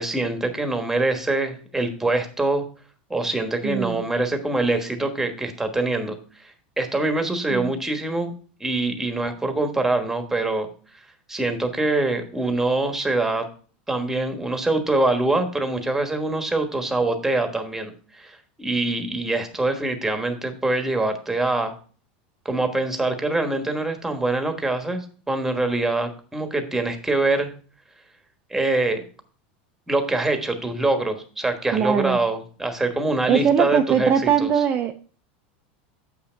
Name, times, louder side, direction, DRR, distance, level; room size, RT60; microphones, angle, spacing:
voice 1, 0.0-2.7 3.1-6.2 6.4-8.3 8.6-10.7 11.3-13.4 13.9-21.7 22.4-27.5 28.5-29.0 29.9-34.1 34.4-34.5, right 2 dB, 5° right, 6 dB, 1.3 m, -24 dB
voice 2, 3.6-4.0 7.5-7.8 31.7-32.2 33.3-35.0, right 8 dB, 35° right, 6 dB, 0.6 m, -21 dB
8.3 x 5.7 x 4.5 m, 0.41 s
supercardioid pair, 135°, 6 cm